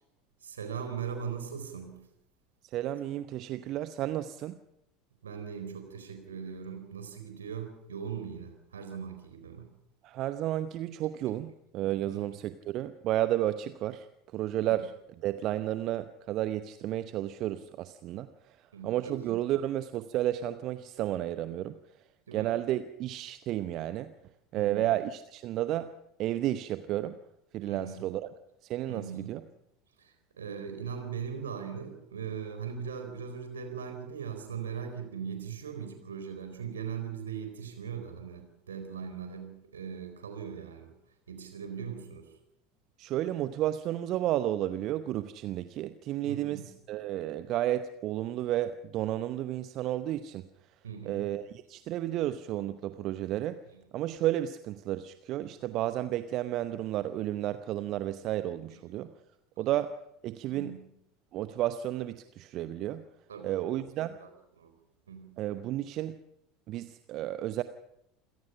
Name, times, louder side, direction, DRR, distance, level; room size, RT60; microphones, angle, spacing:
voice 1, 0.4-2.0 5.2-9.7 12.1-12.2 14.6-14.8 18.7-19.1 22.3-22.5 24.6-24.9 27.7-28.0 28.9-29.3 30.0-40.9 41.3-42.3 46.2-46.7 50.8-51.3 53.7-53.8 58.7-58.8 59.6-59.7 60.5-60.8 63.3-63.8 64.2-64.3 64.6-64.7 65.1-65.3, right 7 dB, 75° right, 6 dB, 4.2 m, -40 dB
voice 2, 2.7-4.6 10.0-14.1 14.3-14.9 15.2-18.6 18.8-21.8 22.3-24.1 24.5-25.9 26.2-27.2 27.5-28.3 28.6-29.4 43.0-50.4 51.0-53.6 53.9-59.1 59.6-59.9 60.2-60.8 61.3-63.0 63.4-64.2 65.4-66.2 66.7-67.6, right 13 dB, 45° right, 12 dB, 0.8 m, -32 dB
27.5 x 17.5 x 5.7 m, 0.80 s
figure-of-eight pair, 70°, 0 cm